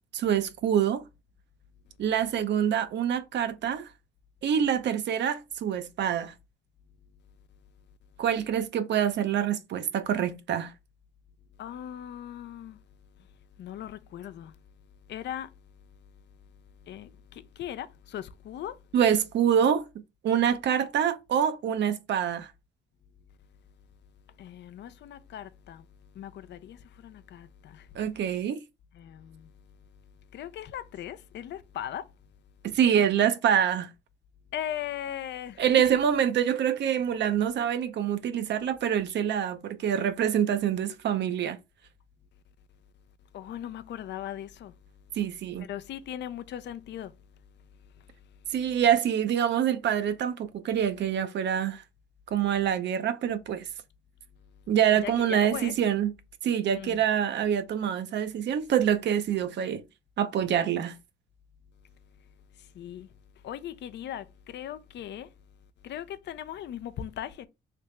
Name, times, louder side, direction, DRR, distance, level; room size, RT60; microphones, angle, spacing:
voice 1, 0.1-1.0 2.0-3.9 4.4-6.3 8.2-10.7 18.9-19.8 20.2-22.5 27.9-28.6 32.6-33.9 35.6-41.6 45.2-45.7 48.5-51.8 52.3-53.7 54.7-56.1 56.4-59.8 60.2-61.0, right 9 dB, 65° right, 0.6 m, -26 dB
voice 2, 11.6-12.8 13.6-14.5 15.1-15.5 16.8-18.8 24.4-25.9 26.1-27.9 28.9-29.5 30.3-32.1 34.5-35.9 43.3-44.7 45.6-47.1 55.0-55.7 56.7-57.0 62.6-63.1 63.4-65.3 65.8-67.5, left 10 dB, 60° left, 0.5 m, -39 dB
3.3 x 2.8 x 3.1 m
cardioid pair, 90°, 20 cm